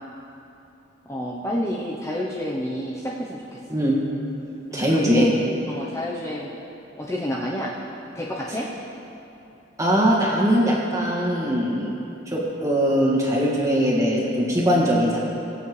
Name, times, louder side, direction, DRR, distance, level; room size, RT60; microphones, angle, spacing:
voice 1, 1.1-3.6 4.7-6.5 7.0-7.8 8.1-8.7, left 1 dB, 15° left, -4 dB, 0.7 m, -28 dB
voice 2, 4.7-5.3 9.8-11.9 12.3-15.2, equal, 15° right, -4 dB, 2.0 m, -21 dB
21.5 x 8.1 x 3.2 m, 2.9 s
head